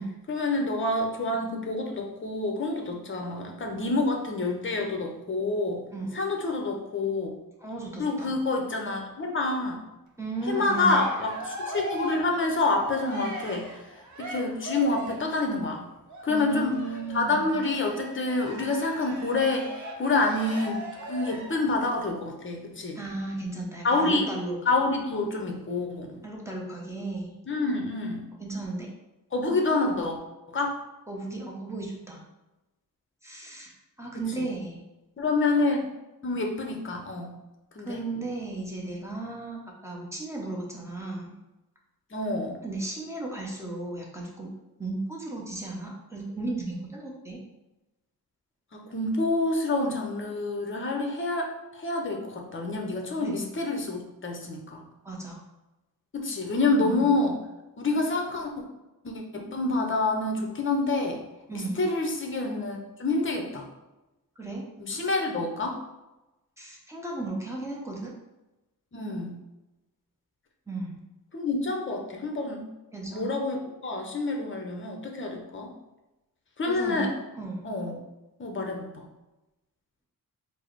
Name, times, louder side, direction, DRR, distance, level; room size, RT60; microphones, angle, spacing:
voice 1, 0.3-5.8 6.1-7.3 8.0-9.8 10.5-13.7 14.2-15.9 16.2-16.8 17.1-23.0 23.8-24.3 24.7-26.2 27.5-28.3 29.3-30.2 30.5-30.8 34.4-34.5 35.2-35.9 36.2-37.4 37.7-38.0 42.1-42.6 48.7-54.8 56.1-57.4 57.8-58.5 59.0-61.2 61.5-63.7 64.8-65.8 68.9-69.4 71.3-72.7 73.1-75.7 76.6-77.1 77.6-78.0 78.4-79.0, left 2 dB, 35° left, 2 dB, 0.7 m, -27 dB
voice 2, 5.9-6.2 7.6-8.4 10.2-11.0 16.3-17.5 22.9-24.6 26.2-27.3 28.4-28.9 31.1-32.2 33.2-34.8 37.8-41.3 42.6-44.5 44.8-47.4 53.2-53.3 55.0-55.4 56.8-57.2 61.5-61.8 64.4-64.7 66.6-68.1 70.7-71.0 72.9-73.3 76.7-77.1 77.3-77.6, right 2 dB, 10° right, -2 dB, 0.8 m, -35 dB
Cheering, 10.3-15.4 16.1-21.7, right 1 dB, 55° right, 0.7 m, -39 dB
4.5 x 2.0 x 4.5 m, 1.0 s
wide cardioid pair, 145°, 36 cm